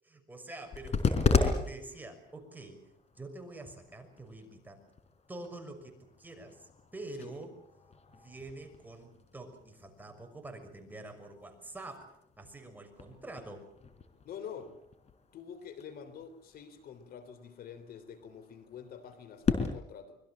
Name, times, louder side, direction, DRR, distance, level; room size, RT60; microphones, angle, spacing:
voice 1, 0.0-2.8 3.1-4.8 5.3-7.5 8.1-13.7, right 2 dB, 10° right, 4 dB, 6.1 m, -46 dB
sound 1, 0.6-19.7, left 5 dB, 40° left, 4.7 m, -37 dB
voice 2, 14.2-14.7 15.3-20.2, left 7 dB, 65° left, 11 dB, 3.5 m, -47 dB
25.5 x 22.0 x 7.6 m, 0.76 s
cardioid pair, 110°, 17 cm